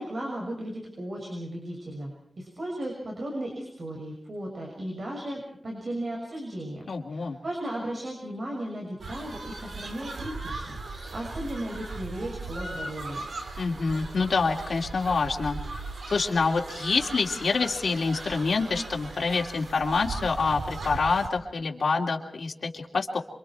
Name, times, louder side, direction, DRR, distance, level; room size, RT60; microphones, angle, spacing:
voice 1, 0.0-13.2, right 1 dB, 55° right, 0 dB, 6.4 m, -36 dB
voice 2, 6.9-7.4 13.6-15.6 16.1-23.2, left 4 dB, 85° left, 0 dB, 2.8 m, -26 dB
sound 1, 9.0-21.3, right 3 dB, 90° right, 3.4 m, -38 dB
28.0 x 24.5 x 4.6 m, 0.67 s
wide cardioid pair, 110°, 0 cm